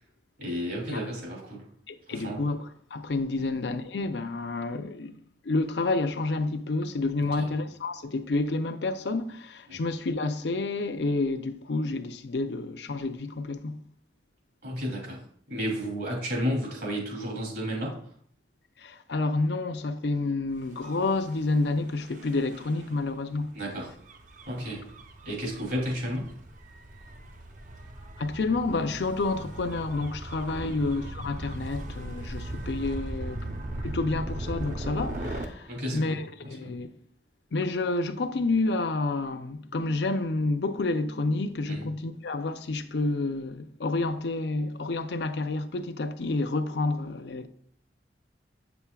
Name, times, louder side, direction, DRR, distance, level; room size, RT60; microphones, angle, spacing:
voice 1, 0.4-1.6 2.1-2.4 3.4-3.5 7.4-7.5 9.7-9.8 14.6-15.2 15.5-18.0 23.5-23.9 24.5-24.8 25.2-26.3 30.6-30.7 35.7-36.2 36.4-36.7 41.7-41.9, equal, 65° right, 3.0 m, -32 dB
voice 2, 1.9-5.1 5.4-13.8 18.8-23.5 28.2-33.5 33.8-36.9 37.5-47.5, left 3 dB, 75° left, 0.6 m, -29 dB
Gull seagull / Waves surf / Siren, 20.7-35.5, right 1 dB, 45° right, 0.7 m, -39 dB
8.0 x 7.0 x 2.3 m
head